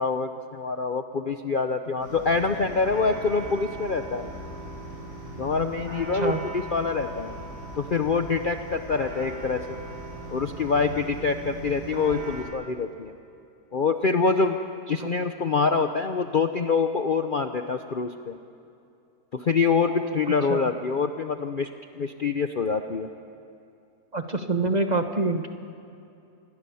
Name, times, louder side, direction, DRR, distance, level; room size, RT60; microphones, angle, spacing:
voice 1, 0.0-4.3 5.4-7.3 7.8-9.8 10.3-13.1 13.7-14.6 14.9-18.4 19.3-21.7 21.9-23.1, left 4 dB, 45° left, 7 dB, 0.7 m, -25 dB
sound 1, 2.0-12.4, right 1 dB, 60° right, 6.4 m, -39 dB
voice 2, 24.1-25.5, right 2 dB, 30° right, 6 dB, 1.2 m, -26 dB
27.0 x 22.0 x 7.0 m, 2.6 s
omnidirectional pair, 1.7 m